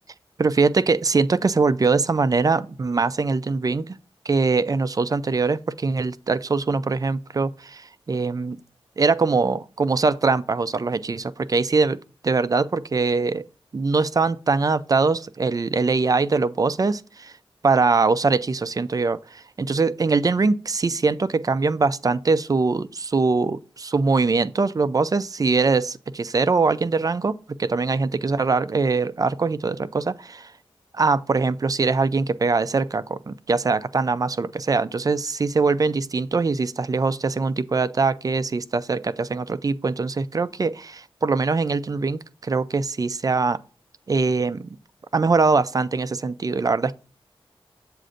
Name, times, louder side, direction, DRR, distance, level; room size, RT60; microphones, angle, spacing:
voice 1, 0.4-3.9 4.3-7.8 8.1-8.6 9.0-12.0 12.2-13.4 13.7-17.3 17.6-19.2 19.6-30.5 31.0-43.6 44.1-44.6 45.1-46.9, right 4 dB, 35° right, 0.4 m, -22 dB
7.5 x 2.5 x 4.9 m
wide cardioid pair, 70°, 10 cm